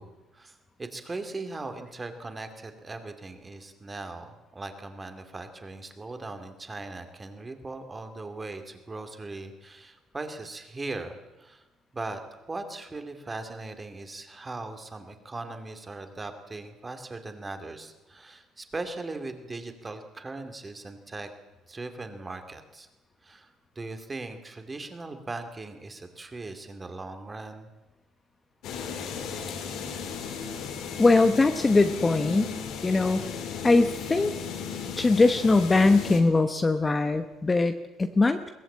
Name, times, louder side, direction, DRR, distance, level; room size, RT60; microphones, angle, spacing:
voice 1, 0.0-11.6 11.9-21.3 21.7-22.9 23.2-27.7, right 3 dB, 20° right, 7 dB, 2.5 m, -39 dB
sound 1, 28.6-36.2, left 6 dB, 70° left, 3.7 m, -35 dB
voice 2, 31.0-32.6 32.8-33.3 33.6-34.3 35.0-38.5, left 3 dB, 20° left, 8 dB, 1.0 m, -21 dB
22.0 x 18.0 x 8.7 m, 1.1 s
cardioid pair, 135°, 0 cm